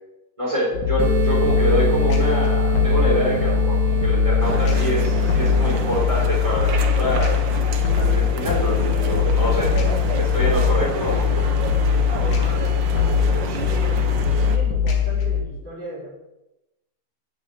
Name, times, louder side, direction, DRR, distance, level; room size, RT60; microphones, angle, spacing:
voice 1, 0.4-7.3 7.9-8.8 9.0-9.7 10.1-11.6, equal, 10° right, -5 dB, 3.8 m, -25 dB
sound 1, 0.7-15.4, left 7 dB, 75° left, 3.0 m, -21 dB
sound 2, 1.0-6.0, right 3 dB, 45° right, 1.4 m, -25 dB
sound 3, 4.4-14.6, right 5 dB, 75° right, 1.0 m, -30 dB
voice 2, 12.0-13.7 14.3-16.1, right 1 dB, 15° left, -8 dB, 3.7 m, -37 dB
7.8 x 7.4 x 8.5 m, 0.94 s
omnidirectional pair, 3.5 m